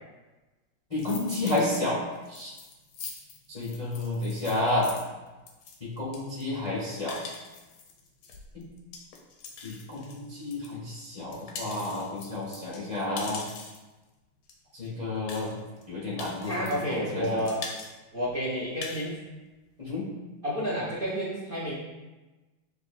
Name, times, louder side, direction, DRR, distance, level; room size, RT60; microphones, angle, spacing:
sound 1, 0.9-1.8 2.1-10.7 11.1-13.9 14.5-14.6 14.8-14.9 15.3-15.8 16.2-17.0 17.2-17.9 18.2-18.3 18.6-19.1, left 5 dB, 80° left, 1.5 m, -43 dB
voice 1, 0.9-2.0 2.3-2.5 3.5-4.9 5.8-7.2 8.5-8.7 9.6-13.4 14.7-15.5 15.9-17.3 19.8-20.1, left 2 dB, 35° left, -8 dB, 0.5 m, -31 dB
voice 2, 16.4-17.6 18.1-19.2 20.4-21.7, equal, 50° right, -5 dB, 0.6 m, -30 dB
7.4 x 2.5 x 2.5 m, 1.1 s
omnidirectional pair, 2.4 m